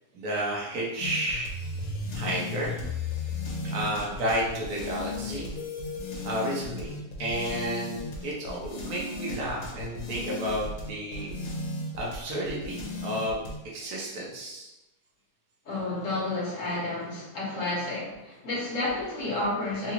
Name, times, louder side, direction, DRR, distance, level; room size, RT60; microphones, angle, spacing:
voice 1, 0.1-1.5 2.1-2.7 3.6-5.5 6.2-6.9 7.2-11.3 12.0-13.4 13.7-14.7, right 1 dB, 75° right, -4 dB, 1.3 m, -31 dB
sound 1, 1.0-13.6, left 3 dB, 90° left, 1.3 m, -35 dB
voice 2, 15.6-19.9, left 2 dB, 55° left, -5 dB, 1.3 m, -31 dB
3.7 x 2.4 x 2.9 m, 0.96 s
omnidirectional pair, 1.6 m